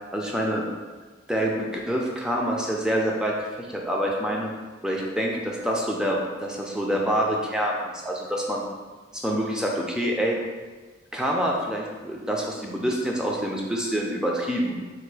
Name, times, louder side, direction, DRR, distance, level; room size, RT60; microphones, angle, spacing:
voice 1, 0.1-0.6 1.3-4.5 4.8-8.6 9.1-10.4 11.1-14.8, equal, 5° right, -2 dB, 0.5 m, -26 dB
3.8 x 2.6 x 4.7 m, 1.4 s
head